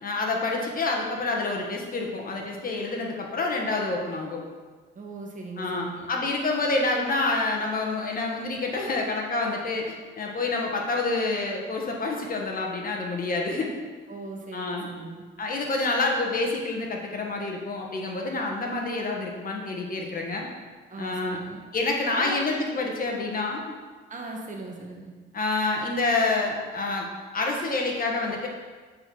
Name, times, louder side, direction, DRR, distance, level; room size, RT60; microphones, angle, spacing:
voice 1, 0.0-4.4 5.6-13.7 14.5-14.9 15.4-20.5 21.0-21.4 21.7-23.6 25.3-27.1 27.3-28.5, left 3 dB, 45° left, 0 dB, 1.6 m, -28 dB
voice 2, 4.9-6.1 14.1-15.2 20.9-21.6 22.1-22.4 24.1-25.1, right 3 dB, 40° right, 0 dB, 1.6 m, -38 dB
8.5 x 4.7 x 5.5 m, 1.4 s
cardioid pair, 90°, 20 cm